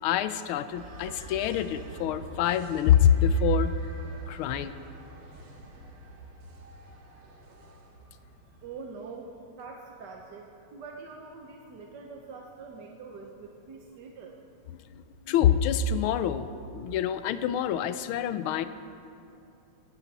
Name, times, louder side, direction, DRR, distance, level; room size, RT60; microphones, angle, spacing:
voice 1, 0.0-3.7 4.3-4.7 15.3-16.5 16.7-18.6, left 8 dB, 80° left, 12 dB, 1.5 m, -25 dB
sound 1, 0.7-9.0, right 2 dB, 80° right, 2.5 m, -46 dB
voice 2, 8.6-14.4, right 4 dB, 60° right, 1 dB, 1.4 m, -44 dB
18.0 x 11.5 x 4.1 m, 2.8 s
omnidirectional pair, 2.3 m